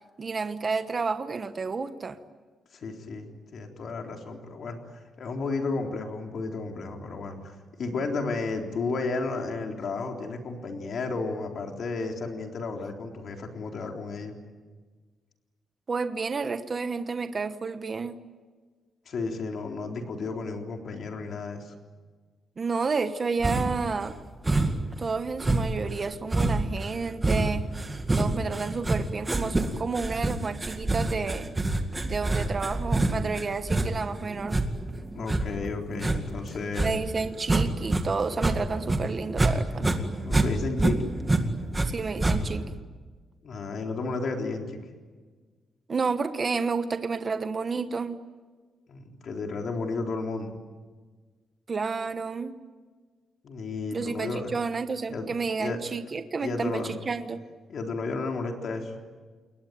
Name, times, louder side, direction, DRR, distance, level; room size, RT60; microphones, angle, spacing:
voice 1, 0.2-2.2 15.9-18.2 22.6-24.2 25.0-27.7 28.1-31.5 32.1-34.6 36.8-39.9 41.8-42.6 45.9-48.2 51.7-52.6 53.9-57.4, right 4 dB, 30° right, 9 dB, 1.1 m, -30 dB
voice 2, 2.7-14.3 19.1-21.7 35.1-37.0 39.7-41.0 43.4-44.8 48.9-50.6 53.4-54.5 55.1-55.3 55.6-55.8 56.4-56.9 57.7-58.9, left 3 dB, 50° left, 2 dB, 3.8 m, -33 dB
sound 1, 23.4-23.9 24.5-24.9 25.4-38.0 38.3-39.5 39.8-41.9 42.2-42.7, right 2 dB, 15° right, 2.1 m, -26 dB
29.0 x 21.5 x 9.3 m, 1.4 s
wide cardioid pair, 170°, 0 cm